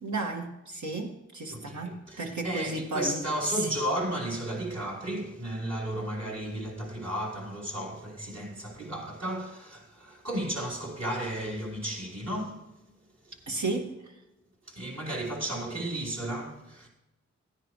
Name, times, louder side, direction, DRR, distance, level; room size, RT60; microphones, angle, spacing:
voice 1, 0.0-3.7 13.5-14.1, right 2 dB, 75° right, 1.9 m, -33 dB
voice 2, 1.5-12.7 13.2-13.4 14.7-16.9, right 1 dB, 60° right, 4.2 m, -34 dB
15.5 x 10.0 x 3.2 m
cardioid pair, 45°, 29 cm